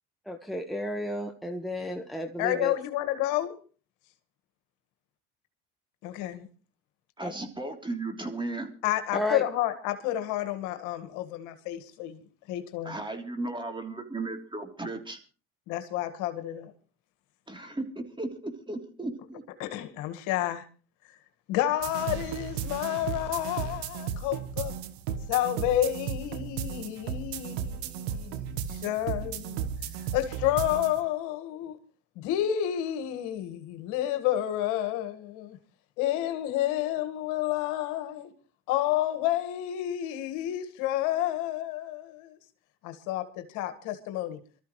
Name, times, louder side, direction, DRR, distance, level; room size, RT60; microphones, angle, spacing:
voice 1, 0.3-2.7 7.2-7.3 9.1-9.4, left 1 dB, ahead, 1.4 m, -32 dB
voice 2, 2.4-3.6 6.0-6.5 8.8-12.2 12.5-12.9 15.7-16.7 19.6-20.7 21.5-24.7 25.3-29.7 30.1-31.8 32.1-35.6 36.0-38.3 38.7-42.4 42.8-44.4, left 13 dB, 75° left, 1.8 m, -30 dB
voice 3, 7.2-8.7 12.8-15.2 17.5-19.4, right 2 dB, 15° right, 3.3 m, -35 dB
sound 1, 21.8-31.0, right 8 dB, 90° right, 1.3 m, -35 dB
25.0 x 13.5 x 3.2 m
supercardioid pair, 85°, 31 cm